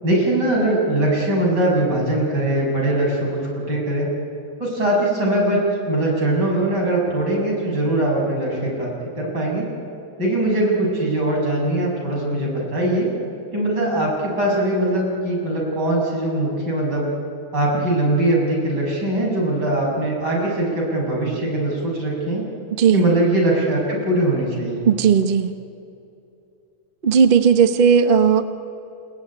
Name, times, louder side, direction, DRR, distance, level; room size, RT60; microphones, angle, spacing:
voice 1, 0.0-4.1 4.6-5.6 5.9-8.9 9.2-9.7 10.2-13.1 13.5-17.1 17.5-22.5 22.9-24.9, right 1 dB, 55° right, -2 dB, 7.2 m, -21 dB
voice 2, 22.7-23.1 24.8-25.5 27.0-28.5, right 7 dB, 40° right, 9 dB, 0.8 m, -16 dB
29.5 x 18.5 x 9.9 m, 2.7 s
omnidirectional pair, 2.2 m